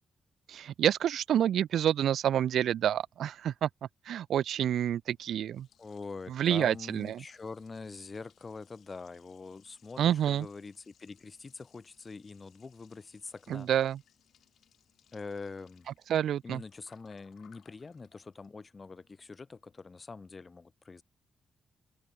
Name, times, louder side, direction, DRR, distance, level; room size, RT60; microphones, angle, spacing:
voice 1, 0.5-3.7 4.1-5.7 6.3-7.2 10.0-10.5 13.5-14.0 16.1-16.6, right 10 dB, 80° right, 0.4 m, -28 dB
Liquid, 5.1-20.2, left 9 dB, 65° left, 5.8 m, -67 dB
voice 2, 5.8-13.7 15.1-15.9 16.4-21.0, left 4 dB, 25° left, 0.6 m, -44 dB
open air
wide cardioid pair, 170°, 0 cm